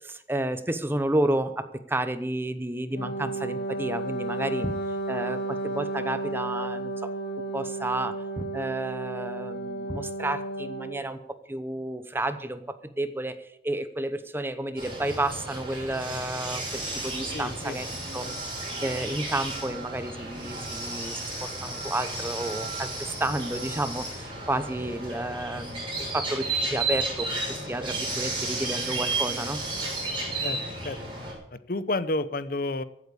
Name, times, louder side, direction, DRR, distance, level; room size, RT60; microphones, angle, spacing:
voice 1, 0.0-4.8 5.1-7.1 7.5-11.2 11.5-17.9 18.1-18.3 18.8-29.6, right 1 dB, 10° right, 12 dB, 0.8 m, -31 dB
Wind instrument woodwind instrument, 2.9-11.1, right 2 dB, 75° left, 1.9 m, -33 dB
sound 1, 14.8-31.3, right 2 dB, 30° right, 6.2 m, -33 dB
voice 2, 17.3-17.8 18.2-18.4 30.4-31.0 31.5-32.8, left 2 dB, 50° left, 14 dB, 0.8 m, -31 dB
15.0 x 8.6 x 8.5 m, 0.79 s
head